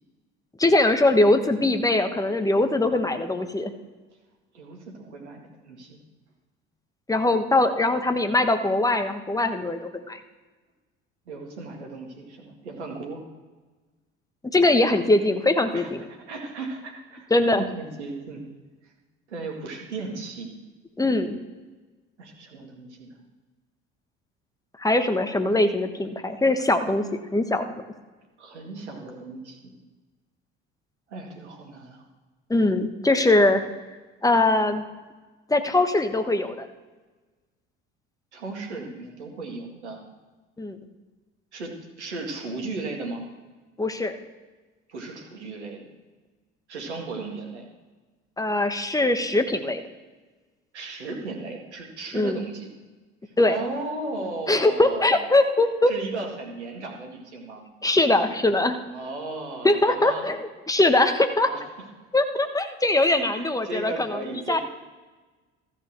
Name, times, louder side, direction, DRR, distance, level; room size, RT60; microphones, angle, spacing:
voice 1, 0.6-3.7 7.1-9.8 10.1-10.2 14.5-16.0 17.3-17.6 21.0-21.3 24.8-27.0 27.3-27.6 32.5-33.6 34.2-34.8 35.5-36.7 40.6-40.8 43.8-44.2 48.4-49.8 52.1-52.4 53.4-53.6 54.5-55.9 57.8-58.8 59.6-61.5 62.1-64.2 64.5-64.6, left 2 dB, 10° left, 8 dB, 1.3 m, -21 dB
voice 2, 4.5-6.0 11.3-13.2 15.7-15.9 16.3-18.5 18.8-18.9 19.3-20.5 22.2-23.2 28.4-29.7 31.1-32.0 38.3-40.0 41.5-43.2 44.9-45.9 46.7-47.7 50.7-52.7 53.2-55.2 55.9-57.6 58.9-60.3 61.5-61.6 63.1-64.6, right 3 dB, 85° right, 1 dB, 2.0 m, -36 dB
14.0 x 5.4 x 6.6 m, 1.3 s
hypercardioid pair, 60°, 33 cm